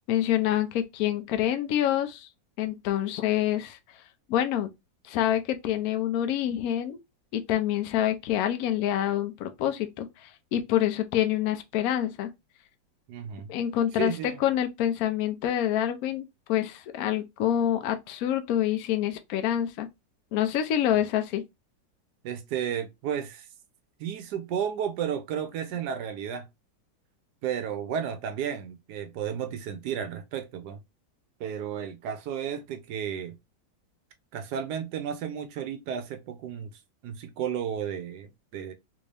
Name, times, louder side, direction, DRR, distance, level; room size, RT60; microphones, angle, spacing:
voice 1, 0.1-2.3 2.6-3.8 4.3-4.7 5.0-7.0 7.3-12.3 13.5-19.9 20.3-21.4, left 11 dB, 80° left, 0.8 m, -27 dB
voice 2, 13.1-13.5 14.0-14.4 22.2-23.5 24.0-26.4 27.4-30.8 31.4-33.4 34.3-36.7 37.0-38.7, right 8 dB, 70° right, 1.0 m, -33 dB
3.4 x 2.6 x 3.3 m
omnidirectional pair, 2.1 m